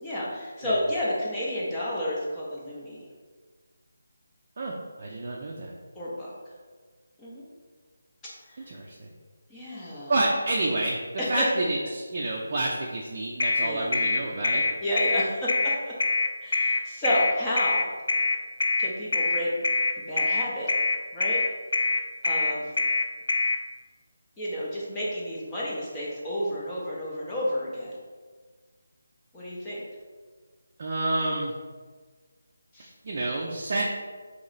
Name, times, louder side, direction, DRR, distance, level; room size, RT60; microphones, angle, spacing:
voice 1, 0.0-3.1 6.0-6.3 7.2-7.5 8.5-8.7 9.5-10.1 11.2-11.4 13.6-13.9 14.8-15.9 16.4-17.9 18.8-19.5 20.1-20.7 21.1-21.4 22.2-22.7 24.4-28.0 29.3-29.8 32.7-32.9, left 1 dB, 10° left, -7 dB, 0.5 m, -31 dB
voice 2, 4.6-5.7 8.7-9.1 10.1-11.0 11.3-14.7 30.8-31.5 33.0-34.0, right 2 dB, 40° right, -3 dB, 0.4 m, -29 dB
sound 1, 13.4-23.6, left 3 dB, 65° left, 0.3 m, -24 dB
3.1 x 2.9 x 4.0 m, 1.5 s
figure-of-eight pair, 170°, 0 cm